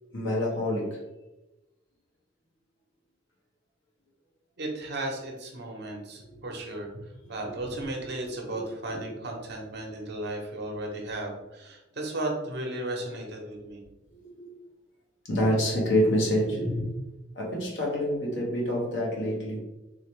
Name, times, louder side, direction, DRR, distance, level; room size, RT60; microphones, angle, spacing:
voice 1, 0.1-1.0 6.3-6.4 8.5-8.7 14.2-14.5 15.3-16.9 17.3-19.6, equal, 70° left, -3 dB, 1.2 m, -27 dB
voice 2, 4.6-6.9 7.3-13.8, right 1 dB, 60° right, 0 dB, 1.0 m, -35 dB
3.9 x 3.1 x 3.2 m, 1.0 s
head